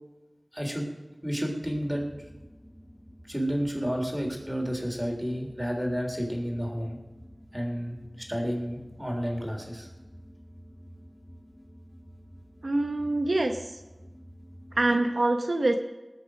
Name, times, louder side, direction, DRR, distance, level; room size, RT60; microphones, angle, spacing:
voice 1, 0.5-0.9 1.2-2.0 3.3-7.0 7.5-9.9, equal, 10° right, 0 dB, 3.7 m, -31 dB
sound 1, 1.6-15.0, equal, 15° left, 1.9 m, -50 dB
voice 2, 12.6-13.8 14.7-15.8, right 2 dB, 70° right, 6 dB, 0.8 m, -25 dB
19.0 x 6.7 x 6.3 m, 1.1 s
wide cardioid pair, 40°, 0 cm